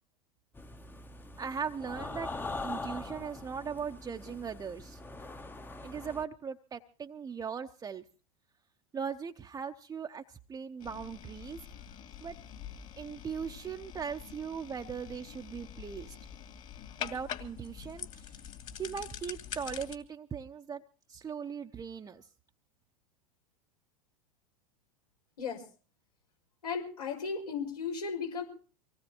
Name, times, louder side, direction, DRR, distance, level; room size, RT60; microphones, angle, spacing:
sound 1, 0.6-6.3, left 2 dB, 10° left, 0.9 m, -42 dB
voice 1, 1.4-2.3 2.6-5.0 5.8-8.0 8.9-11.6 12.2-12.4 13.0-16.2 17.0-18.4 18.8-20.8 21.1-22.3, right 6 dB, 20° right, 4 dB, 0.8 m, -39 dB
sound 2, 10.8-20.0, left 9 dB, 40° left, 2.5 m, -45 dB
voice 2, 26.6-28.4, left 5 dB, 80° left, -1 dB, 5.8 m, -35 dB
25.0 x 18.5 x 3.0 m, 0.40 s
hypercardioid pair, 90°, 20 cm